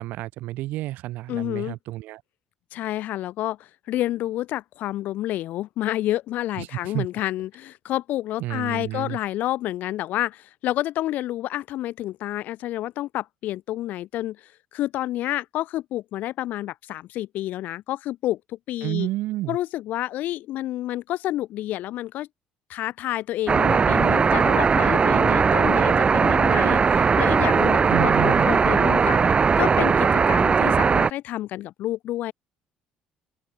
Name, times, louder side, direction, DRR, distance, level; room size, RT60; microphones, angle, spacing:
voice 1, 0.0-2.2 6.6-7.1 8.4-9.2 18.8-19.6 27.9-28.4, right 17 dB, 70° right, 7.8 m, -30 dB
voice 2, 1.3-1.8 2.7-19.1 19.5-22.3 22.7-32.3, left 14 dB, 65° left, 7.7 m, -29 dB
sound 1, 23.5-31.1, right 5 dB, 35° right, 2.0 m, -19 dB
open air
hypercardioid pair, 55°, 3 cm